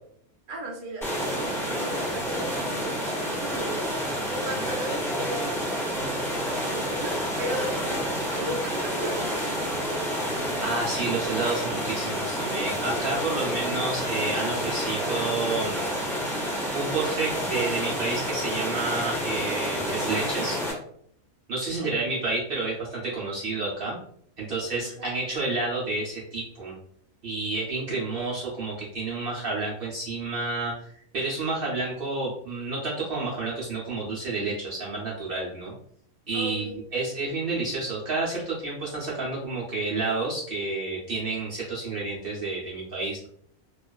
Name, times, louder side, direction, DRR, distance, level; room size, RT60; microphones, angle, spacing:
voice 1, 0.5-10.5 21.8-21.9 24.8-25.1 36.3-36.7, right 1 dB, 90° right, -2 dB, 1.1 m, -37 dB
sound 1, 1.0-20.7, equal, ahead, 0.7 m, -29 dB
voice 2, 10.6-16.0 16.7-20.6 21.5-24.0 24.4-26.7 27.2-35.7 36.3-43.3, right 3 dB, 60° right, -5 dB, 0.6 m, -30 dB
2.4 x 2.3 x 2.2 m, 0.65 s
omnidirectional pair, 1.6 m